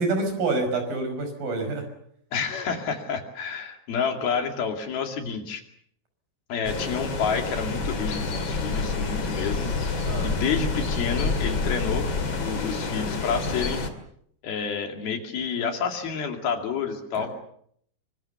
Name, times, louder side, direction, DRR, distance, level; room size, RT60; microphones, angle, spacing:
voice 1, 0.0-1.8 10.1-10.3 17.2-17.3, right 3 dB, 60° right, 6 dB, 7.1 m, -27 dB
voice 2, 2.3-5.6 6.5-9.7 10.2-13.8 14.4-17.3, left 6 dB, 65° left, 4 dB, 4.3 m, -29 dB
sound 1, 6.6-13.9, left 3 dB, 35° left, 2.6 m, -28 dB
26.0 x 24.5 x 7.0 m, 0.68 s
omnidirectional pair, 4.7 m